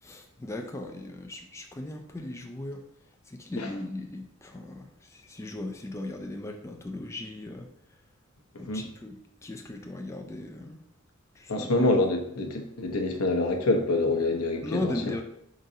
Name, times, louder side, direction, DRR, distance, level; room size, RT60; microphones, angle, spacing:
voice 1, 0.0-2.8 3.3-7.7 8.6-10.8 11.3-11.9 14.6-15.2, left 2 dB, 15° left, 3 dB, 0.3 m, -37 dB
voice 2, 11.5-14.9, left 2 dB, 85° left, 4 dB, 0.7 m, -26 dB
5.0 x 3.9 x 2.7 m, 0.74 s
head